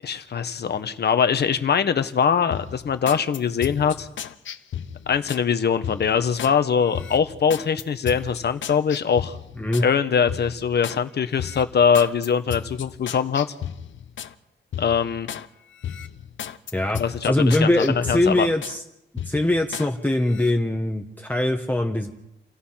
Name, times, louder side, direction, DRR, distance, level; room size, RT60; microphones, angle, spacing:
voice 1, 0.0-4.1 5.1-9.4 9.8-13.5 14.8-15.3 17.0-18.5, left 7 dB, 60° left, 10 dB, 1.4 m, -22 dB
sound 1, 2.5-5.5 5.8-6.6 6.9-9.9 10.3-11.0 11.4-14.3 14.7-15.5 15.8-18.8 19.2-19.9 20.3-20.5, left 9 dB, 85° left, 1.0 m, -35 dB
voice 2, 16.7-18.8 19.2-22.1, left 1 dB, 10° left, 2 dB, 1.3 m, -22 dB
29.5 x 17.0 x 5.9 m, 0.88 s
wide cardioid pair, 125°, 19 cm